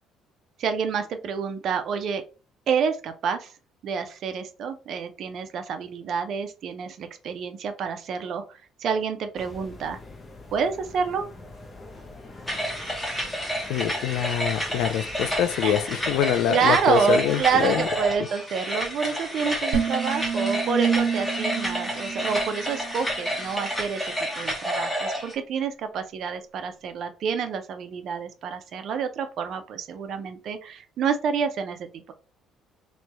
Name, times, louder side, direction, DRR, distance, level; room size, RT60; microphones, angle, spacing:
voice 1, 0.6-2.2 2.7-3.5 3.8-8.4 8.8-10.0 10.5-11.2 14.6-14.9 15.6-15.8 16.5-32.1, right 6 dB, 55° right, 0.5 m, -28 dB
sound 1, 9.4-18.2, left 2 dB, 25° left, 0.6 m, -44 dB
sound 2, 12.5-25.3, equal, 5° left, 0.9 m, -30 dB
voice 2, 13.7-17.9, left 10 dB, 80° left, 0.4 m, -25 dB
sound 3, 19.7-23.1, right 6 dB, 85° right, 1.0 m, -28 dB
3.1 x 2.2 x 4.0 m
cardioid pair, 135°, 0 cm